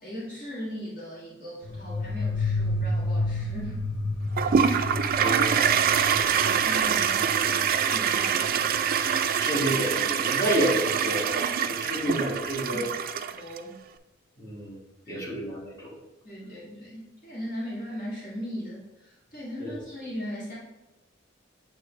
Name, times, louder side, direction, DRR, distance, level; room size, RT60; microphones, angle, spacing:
voice 1, 0.0-3.8 6.3-8.7 12.0-12.1 12.7-12.9 13.3-13.8 15.1-15.3 16.2-20.6, equal, 45° left, -7 dB, 1.7 m, -38 dB
sound 1, 1.6-10.0, left 2 dB, 80° left, 0.6 m, -31 dB
Toilet flush, 4.4-13.6, right 7 dB, 50° right, 0.3 m, -25 dB
voice 2, 9.4-12.8 14.4-14.8 15.1-15.9 19.6-19.7, right 1 dB, 20° left, -8 dB, 2.0 m, -29 dB
7.8 x 3.8 x 3.2 m, 1.0 s
head